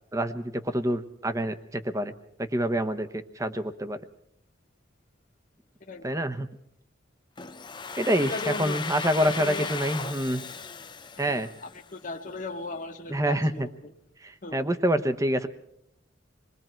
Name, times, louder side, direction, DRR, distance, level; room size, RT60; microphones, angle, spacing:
voice 1, 0.1-2.1 2.5-4.0 6.0-6.5 8.0-10.4 11.2-11.5 13.1-13.7 14.2-15.5, equal, 15° right, 10 dB, 1.0 m, -27 dB
Domestic sounds home sounds, 7.4-12.1, left 5 dB, 25° left, 0.7 m, -37 dB
voice 2, 8.2-9.7 11.2-13.9 14.4-14.6, left 3 dB, 45° left, 2 dB, 1.3 m, -37 dB
27.5 x 21.0 x 4.5 m, 0.73 s
head